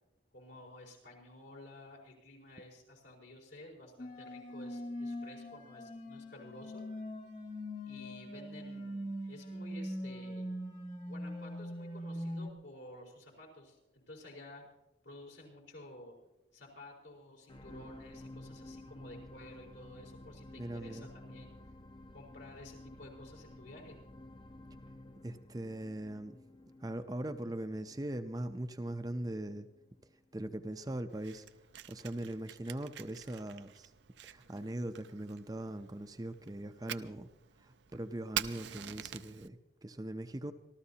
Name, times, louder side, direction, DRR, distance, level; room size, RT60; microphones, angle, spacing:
voice 1, 0.3-6.8 7.9-10.5 11.1-14.6 15.0-16.2 16.5-21.6 22.1-24.0, left 1 dB, 75° left, -1 dB, 4.5 m, -53 dB
sound 1, 4.0-12.5, equal, 40° left, 1.7 m, -42 dB
sound 2, 17.5-29.9 30.5-30.6, left 1 dB, 25° left, 0.6 m, -53 dB
voice 2, 20.6-21.1 25.2-26.4 26.8-29.7 30.3-31.5 31.9-33.9 34.2-37.3 37.6-40.5, right 1 dB, 20° right, 8 dB, 0.5 m, -40 dB
Fire, 31.1-39.5, right 10 dB, 70° right, 0.6 m, -46 dB
26.5 x 13.5 x 2.8 m, 0.94 s
head